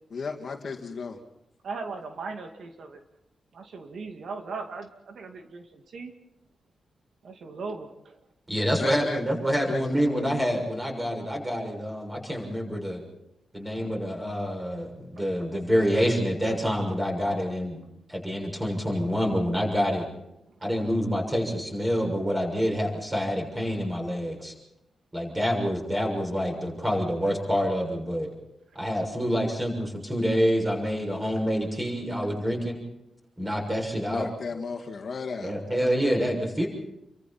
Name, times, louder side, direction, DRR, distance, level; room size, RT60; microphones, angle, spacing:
voice 1, 0.1-1.2 8.8-9.3 9.7-9.8 34.1-35.5, left 5 dB, 50° left, 3 dB, 2.5 m, -34 dB
voice 2, 1.6-3.0 3.5-6.1 7.2-8.2 28.7-28.8 31.2-31.3, right 4 dB, 65° right, 4 dB, 2.2 m, -38 dB
voice 3, 8.5-13.0 13.5-17.8 18.1-20.1 20.6-24.5 25.1-28.3 28.7-32.8 33.4-34.3 35.4-36.7, equal, 10° right, 1 dB, 6.7 m, -27 dB
29.5 x 24.5 x 4.4 m, 0.84 s
wide cardioid pair, 150°, 0 cm